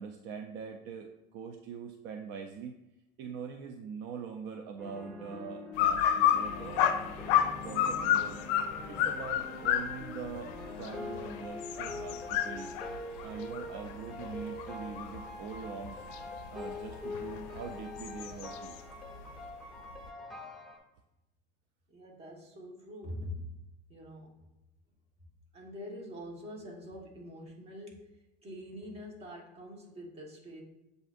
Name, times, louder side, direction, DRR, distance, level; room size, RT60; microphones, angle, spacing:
voice 1, 0.0-2.8 3.2-7.0 7.6-8.4 8.9-12.7 13.2-16.0 16.5-18.8, right 6 dB, 60° right, 4 dB, 0.5 m, -43 dB
sound 1, 4.8-20.8, left 2 dB, ahead, 1.0 m, -44 dB
sound 2, 5.8-15.4 15.8-18.8, left 10 dB, 70° left, 0.5 m, -31 dB
voice 2, 21.9-23.5 23.9-24.4 25.5-28.1 28.4-30.6, left 1 dB, 30° right, -1 dB, 1.2 m, -44 dB
7.6 x 2.6 x 2.5 m, 0.92 s
supercardioid pair, 120°, 21 cm